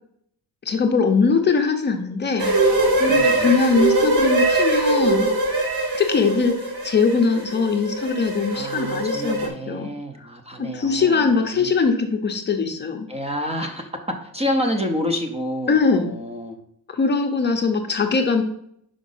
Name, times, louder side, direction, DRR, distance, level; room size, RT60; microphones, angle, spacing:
voice 1, 0.7-2.6 3.0-5.3 6.0-9.9 10.6-13.1 15.7-16.1 16.9-18.4, left 4 dB, 30° left, 4 dB, 0.6 m, -21 dB
sound 1, 2.4-9.5, right 2 dB, 75° right, 1.5 m, -22 dB
voice 2, 3.1-3.5 8.5-11.7 13.1-13.9 14.3-16.6, left 1 dB, 15° right, 4 dB, 0.5 m, -28 dB
5.1 x 5.0 x 5.4 m, 0.70 s
cardioid pair, 165°, 37 cm